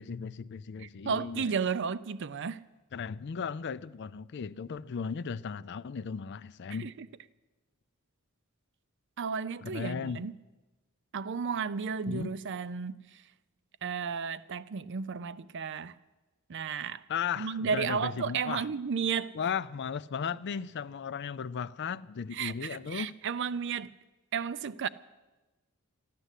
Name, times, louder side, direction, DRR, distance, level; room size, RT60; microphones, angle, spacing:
voice 1, 0.0-1.4 2.9-6.9 9.6-10.3 12.0-12.3 17.1-18.7 19.3-23.1, left 6 dB, 55° left, 0.4 m, -36 dB
voice 2, 0.8-2.6 6.7-7.1 9.2-10.3 11.1-13.2 13.8-16.0 16.5-17.0 17.4-19.4 22.3-23.9 24.3-24.9, right 6 dB, 55° right, 0.5 m, -33 dB
14.0 x 11.5 x 8.2 m
head